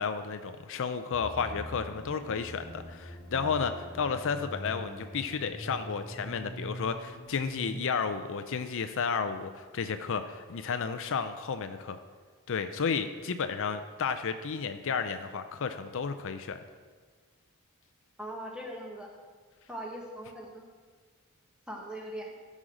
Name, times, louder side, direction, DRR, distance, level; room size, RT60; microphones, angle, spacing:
voice 1, 0.0-12.0 12.5-16.6, left 5 dB, 60° left, 9 dB, 0.5 m, -32 dB
sound 1, 1.1-7.8, equal, 20° left, 2.2 m, -43 dB
voice 2, 18.2-19.1 19.7-20.6 21.7-22.3, right 1 dB, 5° right, -1 dB, 1.6 m, -40 dB
14.0 x 6.3 x 5.1 m, 1.5 s
head